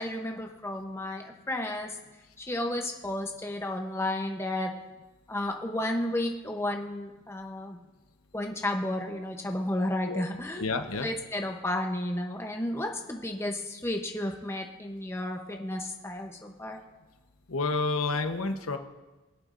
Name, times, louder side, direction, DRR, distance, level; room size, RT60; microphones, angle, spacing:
voice 1, 0.0-1.9 2.4-4.7 5.3-7.8 8.3-10.7 11.0-16.8, left 1 dB, 10° left, 2 dB, 0.7 m, -32 dB
voice 2, 10.6-11.1 17.5-18.8, left 3 dB, 75° left, 7 dB, 0.9 m, -29 dB
22.5 x 8.3 x 2.5 m, 1.2 s
head